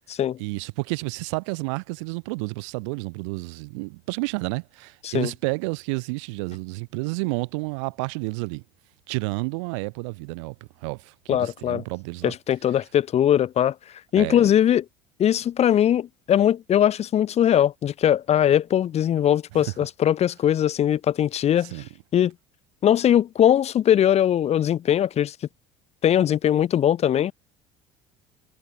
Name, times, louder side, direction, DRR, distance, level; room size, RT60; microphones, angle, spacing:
voice 1, 0.4-8.6 9.1-10.5 10.8-12.3 14.2-14.4 19.5-19.6 21.6-21.9, right 29 dB, 85° right, 2.9 m, -30 dB
voice 2, 11.3-11.8 12.2-13.7 14.1-14.9 15.2-21.7 22.1-22.3 22.8-25.3 26.0-27.3, left 10 dB, 45° left, 1.8 m, -20 dB
supercardioid pair, 95°, 15 cm